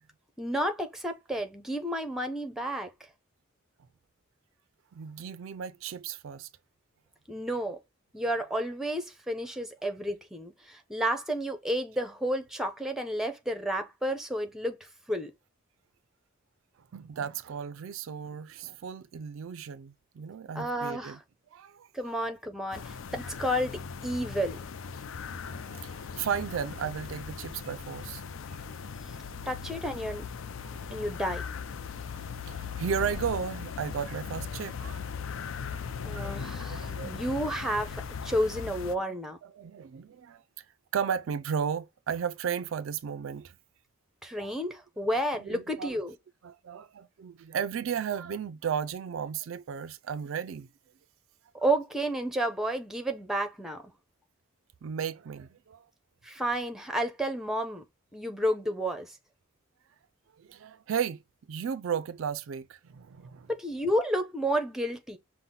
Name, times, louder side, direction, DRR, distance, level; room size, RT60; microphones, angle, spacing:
voice 1, 0.4-2.9 7.3-7.8 8.1-14.8 15.1-15.3 20.5-21.2 21.9-24.6 29.5-30.2 30.9-31.4 36.0-39.4 44.2-46.1 51.6-53.8 56.2-57.8 58.1-59.2 63.5-65.2, equal, ahead, 0.7 m, -31 dB
voice 2, 4.9-6.5 16.9-21.2 21.5-21.9 25.4-28.2 28.5-28.6 30.6-30.8 32.1-35.3 35.6-37.4 39.0-39.1 39.4-40.7 40.9-43.6 44.4-44.5 45.3-46.0 46.4-50.7 54.8-55.9 60.3-61.2 61.5-63.5, right 7 dB, 65° right, 0.4 m, -35 dB
sound 1, 22.7-38.9, left 6 dB, 65° left, 0.4 m, -39 dB
5.6 x 2.1 x 3.7 m
head